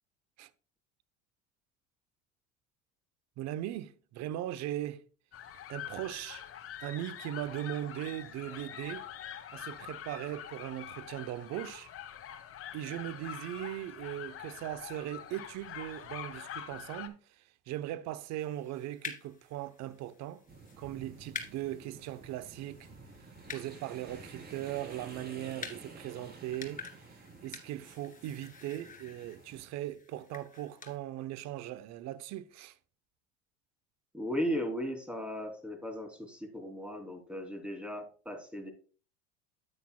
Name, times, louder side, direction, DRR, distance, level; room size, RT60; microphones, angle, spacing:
voice 1, 3.4-5.0 5.7-6.5 6.8-9.1 9.5-11.9 12.7-20.4 20.8-22.9 23.5-32.8, right 13 dB, 55° right, 0.9 m, -39 dB
sound 1, 5.3-17.1, left 10 dB, 45° left, 1.3 m, -45 dB
sound 2, 18.4-31.0, left 5 dB, 25° left, 2.3 m, -49 dB
sound 3, 20.5-29.6, right 3 dB, 30° right, 4.0 m, -51 dB
voice 2, 34.1-38.7, equal, 5° right, 3.1 m, -36 dB
9.6 x 9.2 x 2.3 m
hypercardioid pair, 85°, 33 cm